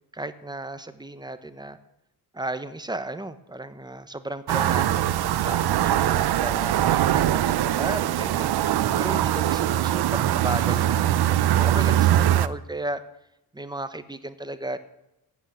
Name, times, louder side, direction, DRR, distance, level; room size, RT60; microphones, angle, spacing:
voice 1, 0.1-1.8 2.3-8.5 8.9-13.0 13.5-14.8, right 2 dB, 10° right, 11 dB, 1.0 m, -34 dB
sound 1, 4.5-12.5, right 12 dB, 85° right, 0.7 m, -22 dB
15.0 x 8.3 x 9.2 m, 0.86 s
wide cardioid pair, 130°, 38 cm